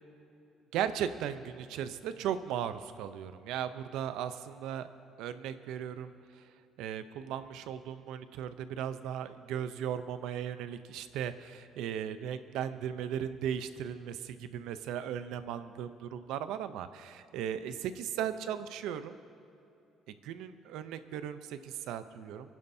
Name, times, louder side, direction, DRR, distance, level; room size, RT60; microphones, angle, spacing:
voice 1, 0.7-4.9 5.2-6.1 6.8-19.2 20.1-22.5, right 9 dB, 80° right, 11 dB, 0.6 m, -37 dB
25.5 x 11.0 x 2.7 m, 2.8 s
cardioid pair, 140°, 0 cm